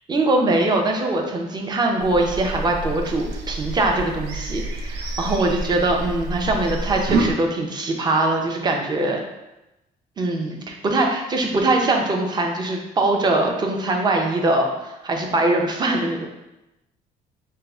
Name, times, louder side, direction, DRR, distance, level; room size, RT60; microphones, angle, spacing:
voice 1, 0.1-9.2 10.2-16.3, right 2 dB, 25° right, 1 dB, 0.6 m, -22 dB
sound 1, 2.0-7.3, right 2 dB, 80° right, 0.5 m, -28 dB
4.5 x 2.1 x 3.4 m, 0.94 s
cardioid pair, 110°, 17 cm